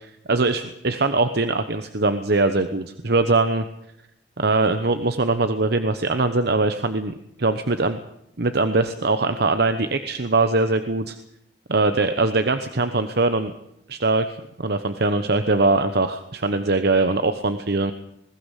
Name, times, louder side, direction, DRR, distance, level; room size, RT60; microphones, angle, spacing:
voice 1, 0.0-3.6 4.4-8.0 8.4-11.2 11.7-13.5 13.9-14.2 14.6-17.9, right 3 dB, 60° right, 9 dB, 1.1 m, -22 dB
21.0 x 16.0 x 8.3 m, 0.81 s
head